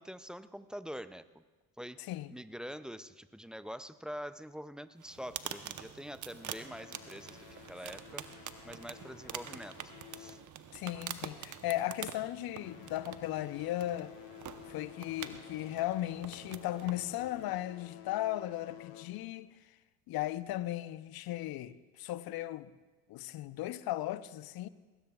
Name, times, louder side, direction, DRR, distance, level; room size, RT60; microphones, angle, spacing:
voice 1, 0.0-1.4 1.8-2.0 2.3-10.4, equal, ahead, 0.3 m, -45 dB
sound 1, 5.0-17.6, right 9 dB, 40° right, 1.0 m, -46 dB
sound 2, 6.3-11.1 11.5-11.8 12.4-19.4, left 12 dB, 70° left, 1.2 m, -53 dB
voice 2, 10.7-14.1 14.7-19.5 20.1-22.7 23.1-24.7, left 14 dB, 50° left, 0.7 m, -36 dB
20.0 x 18.0 x 2.4 m
hypercardioid pair, 70°, 46 cm